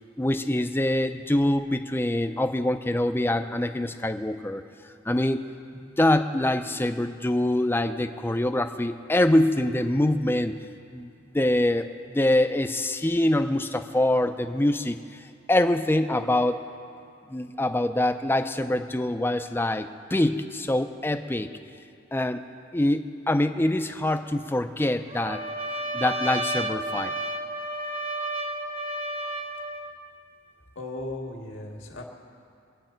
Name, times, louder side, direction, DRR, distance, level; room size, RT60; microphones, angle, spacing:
voice 1, 0.2-4.6 5.1-5.5 5.7-10.6 10.9-15.0 15.5-16.6 17.3-21.5 22.1-22.4 22.7-25.4 25.9-27.1, left 1 dB, 10° left, 8 dB, 0.5 m, -24 dB
Trumpet, 25.1-29.9, right 1 dB, 30° right, 0.8 m, -31 dB
voice 2, 30.8-32.0, left 2 dB, 80° left, 0 dB, 1.9 m, -36 dB
23.5 x 9.0 x 4.5 m, 2.5 s
head